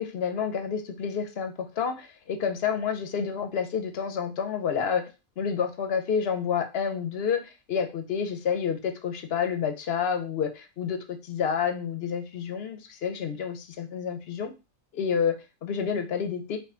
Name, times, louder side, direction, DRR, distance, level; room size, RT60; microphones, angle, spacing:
voice 1, 0.0-5.1 5.4-14.5 14.9-16.6, left 7 dB, 55° left, 6 dB, 0.8 m, -29 dB
5.0 x 2.2 x 3.7 m, 0.29 s
omnidirectional pair, 1.4 m